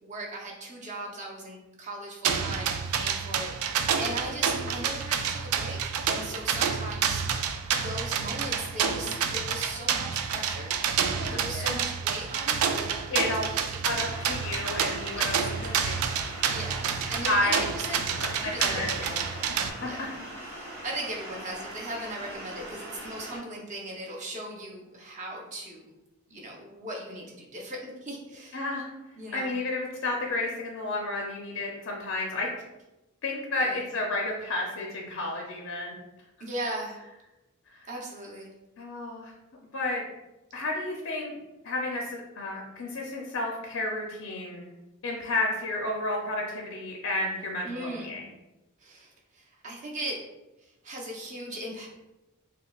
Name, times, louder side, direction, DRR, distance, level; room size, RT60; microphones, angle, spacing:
voice 1, 0.0-5.8 6.1-7.2 7.8-10.8 11.3-13.8 15.1-15.3 16.5-19.3 19.8-20.0 20.5-25.9 26.3-28.6 29.2-29.5 33.6-33.8 36.4-37.0 37.9-38.5 47.6-48.1 48.8-50.2 50.6-51.9, right 1 dB, 35° right, -2 dB, 0.6 m, -38 dB
sound 1, 2.2-19.7, right 7 dB, 80° right, 0.3 m, -29 dB
voice 2, 8.8-9.2 11.2-11.8 13.1-13.4 13.8-16.1 17.3-17.6 18.1-19.2 19.5-20.1 28.5-28.9 29.3-32.5 33.2-35.9 37.7-37.9 38.8-39.3 39.7-40.0 40.5-41.4 41.6-44.6 45.0-48.2, left 2 dB, 65° left, 0 dB, 0.5 m, -31 dB
sound 2, 13.9-23.4, right 1 dB, 50° right, 1.1 m, -41 dB
5.3 x 2.0 x 2.3 m, 1.0 s
head